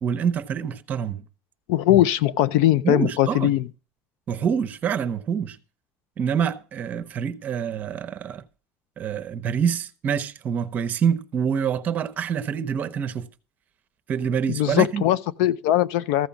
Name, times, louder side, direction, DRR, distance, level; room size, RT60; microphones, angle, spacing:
voice 1, 0.0-1.2 2.8-3.5 4.3-5.6 6.2-8.4 9.0-13.3 14.1-15.0, right 7 dB, 30° right, 0.8 m, -26 dB
voice 2, 1.7-3.7 14.5-16.3, left 13 dB, 85° left, 0.6 m, -20 dB
14.5 x 5.2 x 7.1 m
cardioid pair, 165°, 5 cm